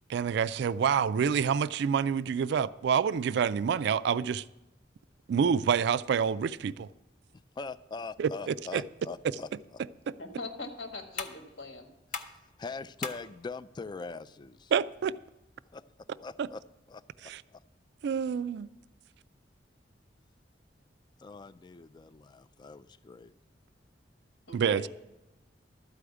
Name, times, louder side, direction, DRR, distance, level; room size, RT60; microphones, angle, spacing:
voice 1, 0.1-4.4 5.3-6.9 8.2-8.8 14.7-15.1 17.2-17.4 18.0-18.7 24.5-24.9, right 7 dB, 65° right, 0.3 m, -27 dB
voice 2, 7.3-9.8 12.1-14.7 15.7-16.6 16.9-17.6 21.2-23.3, left 4 dB, 25° left, 0.3 m, -43 dB
sound 1, 9.6-16.6, left 5 dB, 45° left, 0.7 m, -46 dB
voice 3, 10.2-11.9 24.5-24.9, left 2 dB, 75° left, 1.5 m, -41 dB
12.5 x 4.9 x 8.0 m
head